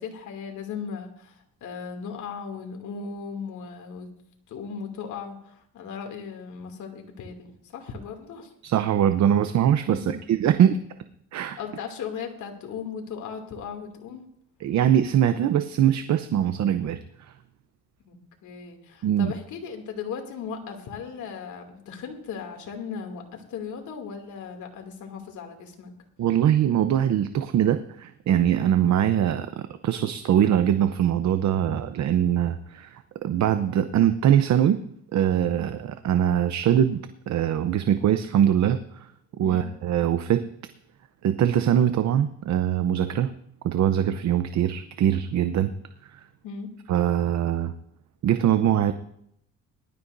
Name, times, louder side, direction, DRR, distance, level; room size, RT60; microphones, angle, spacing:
voice 1, 0.0-4.1 4.5-7.5 7.7-8.5 9.9-10.1 11.6-14.2 18.0-25.9 39.4-39.7 46.4-46.7, left 6 dB, 80° left, 3 dB, 2.7 m, -37 dB
voice 2, 8.6-10.8 11.3-11.6 14.6-17.3 19.0-19.3 26.2-34.8 35.1-39.1 39.4-40.5 41.2-43.3 43.6-45.7 46.1-46.2 46.9-47.7 48.2-48.9, right 10 dB, 65° right, 10 dB, 0.8 m, -22 dB
20.5 x 13.0 x 2.7 m, 0.72 s
cardioid pair, 90°, 30 cm